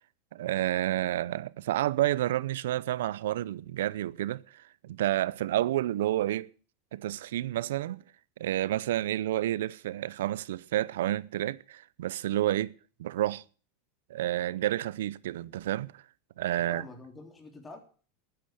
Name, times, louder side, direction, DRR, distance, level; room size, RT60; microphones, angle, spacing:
voice 1, 0.3-6.5 6.9-8.0 8.4-12.7 13.0-13.4 14.1-16.0 16.4-16.8, right 13 dB, 80° right, 0.6 m, -30 dB
voice 2, 16.6-17.8, left 3 dB, 20° left, 3.5 m, -46 dB
11.5 x 10.0 x 7.7 m
supercardioid pair, 115°, 0 cm